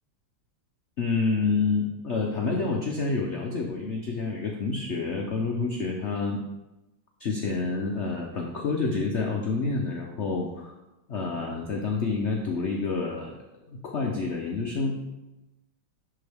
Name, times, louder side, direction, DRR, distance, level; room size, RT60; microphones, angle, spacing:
voice 1, 1.0-6.4 7.2-10.7 11.1-13.3 13.7-15.0, left 4 dB, 80° left, 0 dB, 0.6 m, -28 dB
10.5 x 3.8 x 3.4 m, 1.0 s
omnidirectional pair, 2.1 m